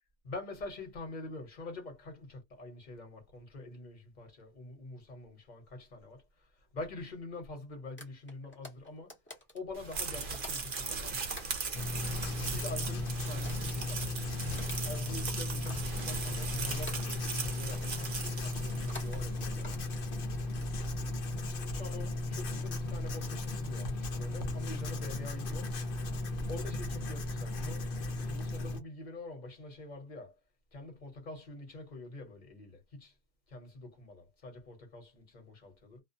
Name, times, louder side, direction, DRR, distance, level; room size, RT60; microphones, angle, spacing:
voice 1, 0.2-6.2 6.7-9.1 9.5-11.5 12.5-14.4 14.8-20.0 21.4-25.7 26.5-27.9 28.2-30.4 30.7-33.1 33.5-36.0, left 2 dB, 40° left, 1.1 m, -45 dB
sound 1, 8.0-11.9 12.2-16.5 16.9-17.4 17.7-18.0 18.7-19.2 19.6-20.7 21.2-21.7, left 1 dB, 10° left, 0.7 m, -49 dB
sound 2, 9.8-19.3, right 4 dB, 50° right, 0.9 m, -39 dB
Writing, 11.7-28.8, left 2 dB, 55° left, 0.8 m, -36 dB
2.4 x 2.2 x 2.6 m
omnidirectional pair, 1.2 m